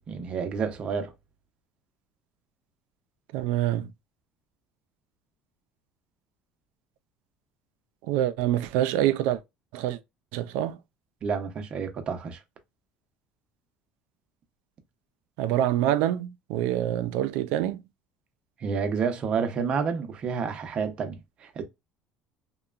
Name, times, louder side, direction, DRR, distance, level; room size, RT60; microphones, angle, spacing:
voice 1, 0.1-1.1 11.2-12.4 18.6-21.6, right 6 dB, 40° right, 0.6 m, -29 dB
voice 2, 3.3-3.9 8.1-9.4 9.7-10.0 10.3-10.8 15.4-17.8, right 12 dB, 80° right, 0.3 m, -26 dB
2.8 x 2.2 x 2.4 m
cardioid pair, 135°, 3 cm